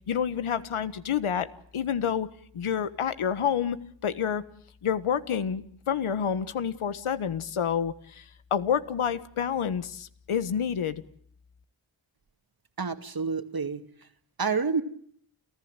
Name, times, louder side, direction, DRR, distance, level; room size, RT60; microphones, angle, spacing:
voice 1, 0.1-1.5 1.7-2.3 2.5-3.8 4.0-4.4 4.8-8.2 8.5-11.0, left 8 dB, 80° left, 13 dB, 1.5 m, -28 dB
voice 2, 12.8-14.1 14.4-14.8, right 5 dB, 45° right, 9 dB, 2.3 m, -29 dB
29.5 x 15.0 x 9.0 m, 0.63 s
cardioid pair, 60°, 49 cm